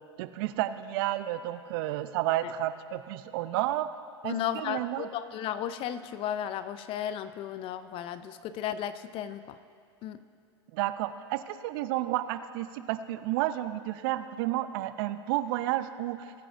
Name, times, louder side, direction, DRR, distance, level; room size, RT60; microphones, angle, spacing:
voice 1, 0.2-3.9 4.2-5.1 10.7-16.3, right 14 dB, 50° right, 12 dB, 0.5 m, -31 dB
voice 2, 4.2-9.6 10.0-10.2, left 10 dB, 35° left, 13 dB, 0.5 m, -34 dB
21.0 x 9.1 x 2.6 m, 2.3 s
hypercardioid pair, 100°, 15 cm